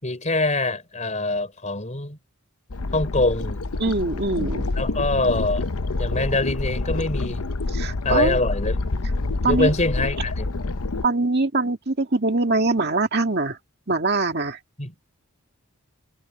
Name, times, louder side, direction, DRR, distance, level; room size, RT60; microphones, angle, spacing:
voice 1, 0.0-2.2 2.9-3.6 4.8-5.7 6.0-7.4 8.0-8.8 9.5-10.5 14.8-14.9, left 2 dB, 30° left, 3.8 m, -24 dB
sound 1, 2.7-11.0, left 2 dB, 80° left, 0.9 m, -27 dB
voice 2, 3.8-4.7 7.7-8.4 9.4-9.7 11.0-13.6 13.9-14.6, right 3 dB, 45° right, 2.1 m, -23 dB
head